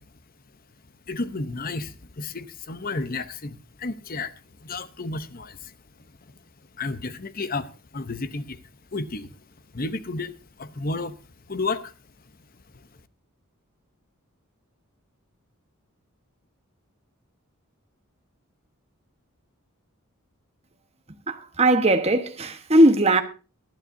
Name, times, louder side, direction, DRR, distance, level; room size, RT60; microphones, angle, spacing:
voice 1, 1.1-4.3 4.6-5.7 6.8-8.6 8.9-9.4 9.7-11.2 11.5-11.9 12.7-12.9, left 3 dB, 40° left, 0.8 m, -32 dB
voice 2, 21.3-23.2, right 1 dB, 30° right, 1.2 m, -19 dB
20.0 x 12.0 x 2.7 m
head